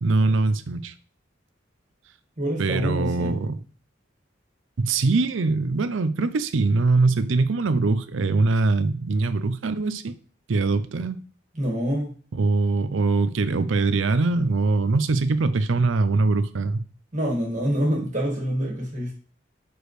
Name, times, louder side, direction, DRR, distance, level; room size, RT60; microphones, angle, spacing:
voice 1, 0.0-0.9 2.6-3.6 4.8-10.1 10.5-11.2 12.3-16.8, right 3 dB, 90° right, 13 dB, 0.5 m, -22 dB
voice 2, 2.4-3.3 11.5-12.1 17.1-19.1, equal, 40° right, -2 dB, 1.9 m, -26 dB
6.2 x 5.0 x 3.2 m, 0.40 s
head